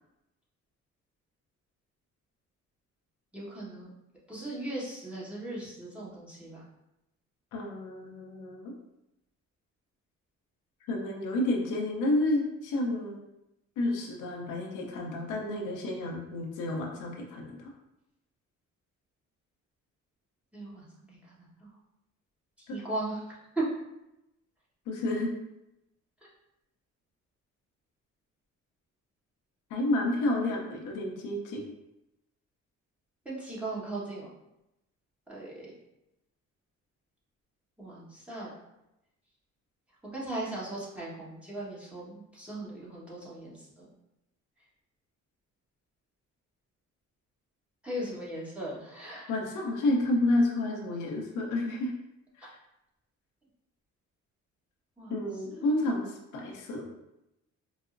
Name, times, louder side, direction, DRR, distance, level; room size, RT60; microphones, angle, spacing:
voice 1, 3.3-3.9 4.3-6.6 20.5-21.7 22.6-23.7 33.2-34.3 35.3-35.7 37.8-38.5 40.0-43.9 47.8-49.3 55.0-55.8, right 1 dB, 5° right, -7 dB, 1.2 m, -38 dB
voice 2, 7.5-8.7 10.9-13.2 13.8-17.7 22.7-22.8 24.9-25.3 29.7-31.6 48.0-48.2 49.3-51.9 52.4-52.5 55.1-56.8, left 1 dB, 85° left, 0 dB, 0.7 m, -30 dB
4.6 x 2.0 x 2.5 m, 0.89 s
cardioid pair, 90°, 30 cm